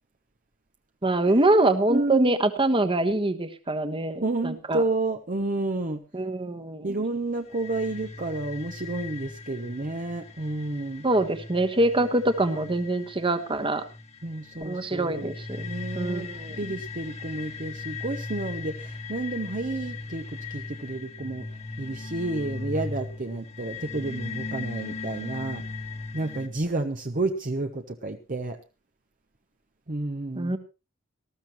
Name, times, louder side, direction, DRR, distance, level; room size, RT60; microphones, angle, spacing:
voice 1, 1.0-4.8 6.1-7.0 11.0-13.8 14.6-15.6 15.9-16.6 30.3-30.6, right 2 dB, 25° right, 9 dB, 1.3 m, -24 dB
voice 2, 1.9-2.3 4.2-6.0 6.8-11.0 14.2-21.5 21.8-25.6 26.1-28.6 29.9-30.6, right 2 dB, 40° right, 5 dB, 0.9 m, -30 dB
sound 1, 7.5-26.5, left 3 dB, 30° left, 1.5 m, -38 dB
19.0 x 13.5 x 3.0 m, 0.29 s
head